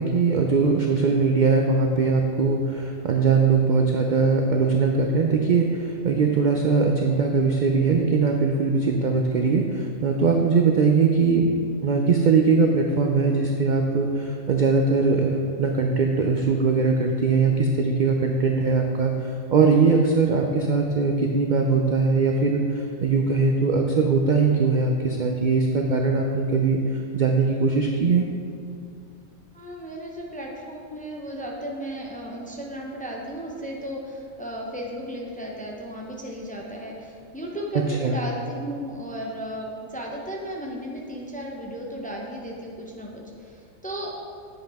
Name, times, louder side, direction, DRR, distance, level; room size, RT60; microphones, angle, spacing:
voice 1, 0.0-19.1 19.5-26.8 27.1-28.3 38.0-38.2, right 4 dB, 70° right, 2 dB, 0.4 m, -21 dB
voice 2, 29.5-44.1, equal, 10° left, -1 dB, 0.5 m, -35 dB
7.6 x 7.3 x 3.5 m, 2.3 s
omnidirectional pair, 1.4 m